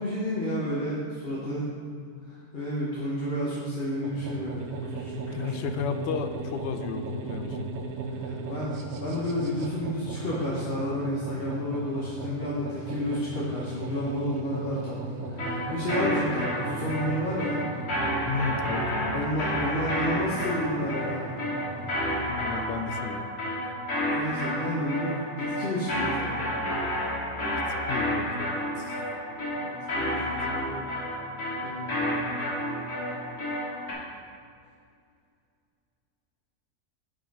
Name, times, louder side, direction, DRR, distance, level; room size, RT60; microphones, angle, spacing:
voice 1, 0.0-1.6 2.2-4.7 4.9-5.6 8.1-17.6 19.1-21.3 24.1-26.5 29.6-30.8 31.6-33.1, equal, 45° left, -7 dB, 1.2 m, -31 dB
sound 1, 4.0-22.9, right 4 dB, 80° right, 1.2 m, -37 dB
voice 2, 5.3-7.7 18.3-19.2 22.3-23.3 27.9-29.0 30.3-30.4, left 5 dB, 65° left, 8 dB, 0.7 m, -33 dB
sound 2, 15.4-33.9, left 1 dB, 90° left, 2.4 m, -30 dB
8.6 x 4.9 x 4.7 m, 2.3 s
omnidirectional pair, 1.6 m